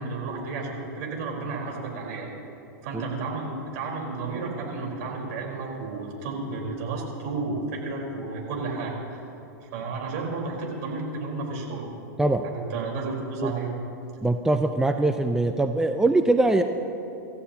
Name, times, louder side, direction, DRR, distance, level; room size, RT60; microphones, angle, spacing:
voice 1, 0.0-2.3 2.8-9.3 9.7-11.9 12.4-13.7, right 3 dB, 60° right, -1 dB, 4.3 m, -32 dB
voice 2, 14.2-16.6, right 2 dB, 5° right, 7 dB, 0.5 m, -22 dB
27.0 x 14.0 x 2.9 m, 2.8 s
hypercardioid pair, 115°, 10 cm